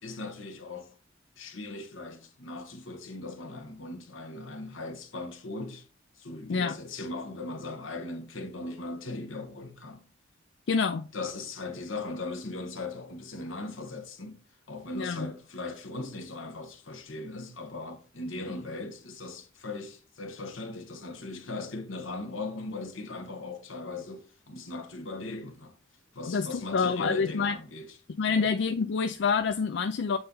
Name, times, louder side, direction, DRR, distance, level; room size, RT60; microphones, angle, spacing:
voice 1, 0.0-0.9 1.4-5.9 6.2-10.0 11.1-14.4 14.7-25.7 26.1-28.0 28.3-28.5, left 2 dB, 85° left, 1.2 m, -39 dB
voice 2, 10.7-11.1 15.0-15.3 26.3-27.5 28.2-30.2, left 5 dB, 60° left, 0.4 m, -27 dB
7.7 x 4.2 x 3.8 m
head